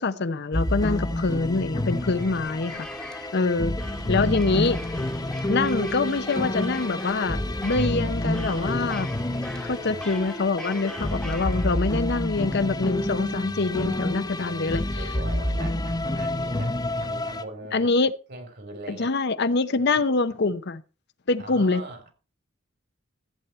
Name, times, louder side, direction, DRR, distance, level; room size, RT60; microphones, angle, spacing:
voice 1, 0.0-2.9 3.3-3.7 4.1-4.8 5.5-9.1 9.6-15.0 17.7-18.1 18.9-20.8 21.3-21.8, left 3 dB, 55° left, 0.8 m, -25 dB
sound 1, 0.5-17.4, left 1 dB, 20° left, 0.9 m, -29 dB
sound 2, 1.7-12.2, left 1 dB, 5° left, 1.3 m, -40 dB
voice 2, 2.1-2.6 3.5-4.1 9.9-10.0 13.4-14.0 14.4-19.1 19.9-20.0 21.4-22.1, right 2 dB, 55° right, 3.7 m, -42 dB
14.5 x 8.4 x 4.4 m
head